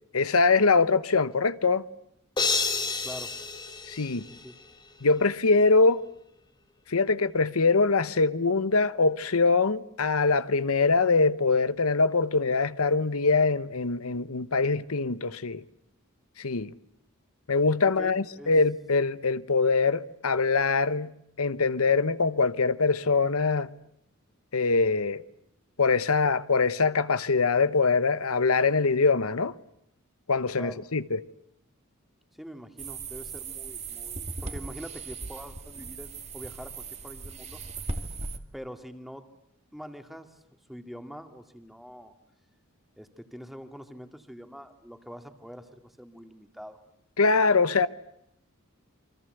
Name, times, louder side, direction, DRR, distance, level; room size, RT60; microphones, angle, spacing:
voice 1, 0.1-1.8 3.9-4.2 5.0-6.0 6.9-15.6 16.4-16.7 17.5-21.1 21.4-23.7 24.5-25.2 25.8-29.5 30.3-31.2 47.2-47.9, left 4 dB, 90° left, 1.1 m, -23 dB
sound 1, 2.4-4.7, left 4 dB, 20° left, 3.3 m, -30 dB
voice 2, 3.0-3.3 4.2-4.6 17.8-18.5 30.6-30.8 32.4-37.6 38.5-39.3 39.7-40.4 40.7-42.1 43.0-46.8, equal, ahead, 2.2 m, -44 dB
sound 2, 32.8-38.4, right 3 dB, 30° right, 2.0 m, -38 dB
28.5 x 25.0 x 8.0 m
head